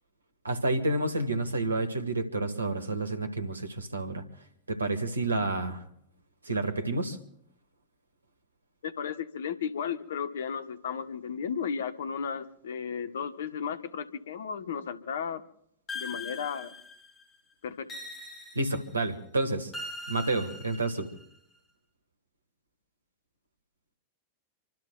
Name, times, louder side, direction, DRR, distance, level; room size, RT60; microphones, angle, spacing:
voice 1, 0.4-4.2 4.7-5.8 6.4-7.2 18.5-19.7 20.1-21.1, right 2 dB, 80° right, 10 dB, 1.5 m, -29 dB
voice 2, 8.8-15.4 15.9-16.7 17.6-17.9, left 7 dB, 65° left, 12 dB, 1.0 m, -34 dB
sound 1, 15.9-17.2 17.9-19.0 19.7-21.2, left 2 dB, 20° left, 3.8 m, -41 dB
26.5 x 24.5 x 2.2 m, 0.69 s
figure-of-eight pair, 90°, 0 cm